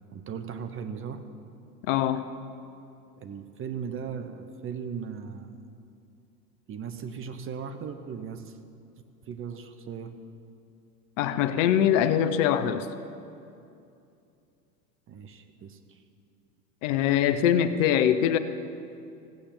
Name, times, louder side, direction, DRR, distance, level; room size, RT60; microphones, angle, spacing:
voice 1, 0.1-1.2 3.2-5.6 6.7-8.6 9.3-10.1 15.1-16.0, right 6 dB, 25° right, 9 dB, 0.9 m, -37 dB
voice 2, 1.8-2.2 11.2-12.9 16.8-18.4, left 10 dB, 50° left, 11 dB, 0.8 m, -23 dB
15.5 x 8.5 x 7.5 m, 2.6 s
hypercardioid pair, 95°, 47 cm